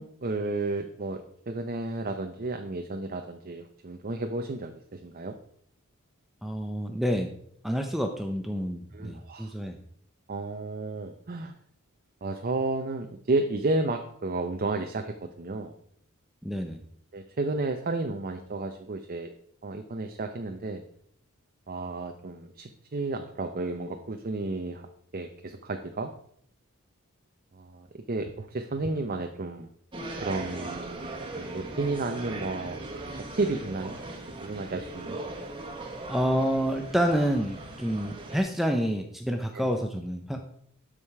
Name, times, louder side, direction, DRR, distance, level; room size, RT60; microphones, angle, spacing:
voice 1, 0.0-5.3 8.9-9.5 10.3-11.5 12.2-15.7 17.1-19.3 19.6-20.8 21.7-24.8 25.1-26.1 27.6-29.7 30.2-32.8 33.3-34.0 34.4-35.2 39.5-39.6, right 2 dB, 45° right, 5 dB, 0.7 m, -32 dB
voice 2, 6.4-7.3 7.6-9.8 16.4-16.8 36.1-40.4, equal, ahead, 4 dB, 0.6 m, -28 dB
sound 1, 29.9-38.4, right 2 dB, 25° right, 1.4 m, -39 dB
13.0 x 5.0 x 4.7 m, 0.67 s
head